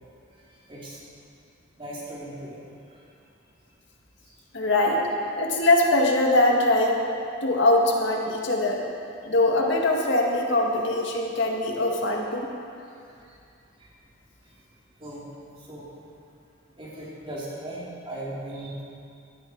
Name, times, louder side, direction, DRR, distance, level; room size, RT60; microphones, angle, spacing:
voice 1, 0.7-1.0 1.8-3.0 4.3-4.4 12.9-13.0 13.3-13.4 13.8-13.9 15.0-15.2 15.6-15.9 16.8-18.8, right 1 dB, 25° right, -6 dB, 3.6 m, -38 dB
voice 2, 4.5-5.0 5.4-7.1 7.4-8.8 9.3-12.5, left 2 dB, 60° left, 0 dB, 1.9 m, -22 dB
18.0 x 12.5 x 4.6 m, 2.5 s
head